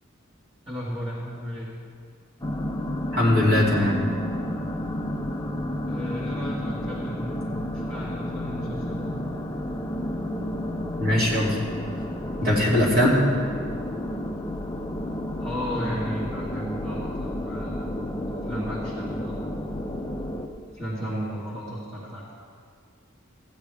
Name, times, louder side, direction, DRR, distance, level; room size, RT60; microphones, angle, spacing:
voice 1, 0.7-1.7 5.9-7.5 7.7-9.1 15.4-17.9 18.4-19.6 20.7-22.3, equal, 25° right, -8 dB, 1.8 m, -34 dB
sound 1, 2.4-20.5, left 1 dB, 20° left, 0.5 m, -31 dB
voice 2, 3.1-4.0 11.0-11.6 12.4-13.2, left 1 dB, 50° right, -4 dB, 2.6 m, -20 dB
15.0 x 9.4 x 3.4 m, 2.2 s
head